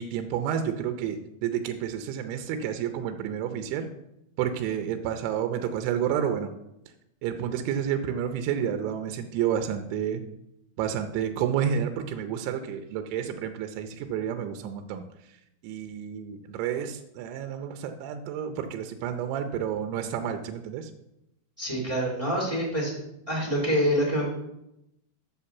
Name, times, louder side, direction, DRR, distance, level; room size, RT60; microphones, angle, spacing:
voice 1, 0.0-3.9 4.4-6.5 7.2-10.2 10.8-15.1 15.6-20.9, right 9 dB, 85° right, 7 dB, 3.0 m, -30 dB
voice 2, 21.6-22.9 23.3-24.2, equal, 15° right, -2 dB, 1.0 m, -26 dB
8.0 x 5.6 x 7.0 m, 0.83 s
omnidirectional pair, 5.2 m